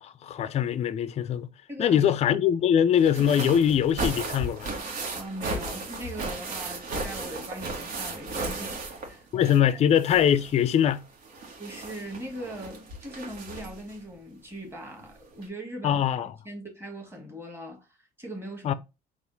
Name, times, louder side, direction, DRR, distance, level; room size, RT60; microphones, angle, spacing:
voice 1, 0.0-1.5 1.8-4.7 9.3-11.0 15.8-16.3 18.6-18.7, left 9 dB, 40° left, 0.4 m, -22 dB
voice 2, 1.7-2.2 5.1-9.8 11.6-16.0 16.4-18.7, right 1 dB, 15° right, 1.6 m, -40 dB
sound 1, 2.9-9.7 10.0-13.9 15.0-15.1 15.4-15.5, right 2 dB, 75° right, 1.3 m, -35 dB
4.2 x 2.4 x 3.9 m
cardioid pair, 110°, 17 cm